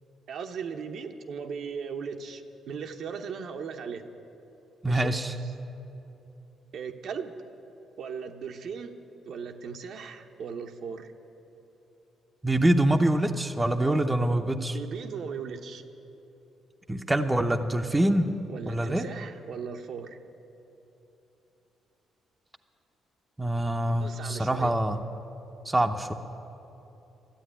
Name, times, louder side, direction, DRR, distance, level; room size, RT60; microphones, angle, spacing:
voice 1, 0.3-4.0 4.9-5.2 6.7-7.3 8.0-8.9 9.2-11.1 13.8-14.1 14.7-15.9 18.5-20.2 24.0-24.7, right 6 dB, 70° right, 5 dB, 0.9 m, -38 dB
voice 2, 4.8-5.3 12.4-14.8 16.9-18.3 18.6-19.0 23.4-25.0 25.7-26.1, right 1 dB, 15° right, 6 dB, 0.7 m, -25 dB
13.0 x 8.5 x 10.0 m, 3.0 s
cardioid pair, 90°, 0 cm